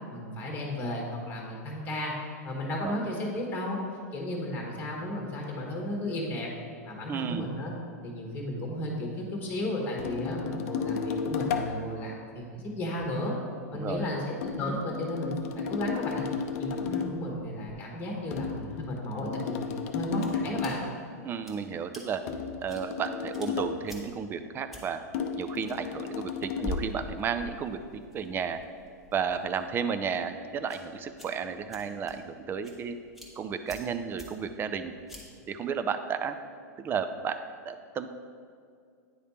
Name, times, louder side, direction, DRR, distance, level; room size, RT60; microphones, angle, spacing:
voice 1, 0.1-2.1 2.4-3.8 4.1-6.5 6.8-7.7 8.0-13.4 13.7-16.3 16.6-20.8, left 1 dB, 20° left, -1 dB, 1.3 m, -34 dB
voice 2, 7.1-7.5 13.7-14.0 21.2-22.2 22.6-25.0 25.4-28.6 29.1-33.0 33.4-34.9 35.5-36.4 36.8-37.4 37.6-38.1, right 6 dB, 25° right, 9 dB, 0.4 m, -33 dB
sound 1, 10.0-11.8 14.4-17.2 18.3-20.8 22.3-23.8 25.1-26.9, left 6 dB, 55° left, 0.6 m, -33 dB
sound 2, 20.0-35.5, left 1 dB, ahead, 1.3 m, -47 dB
9.4 x 3.3 x 4.2 m, 2.3 s
hypercardioid pair, 110°, 9 cm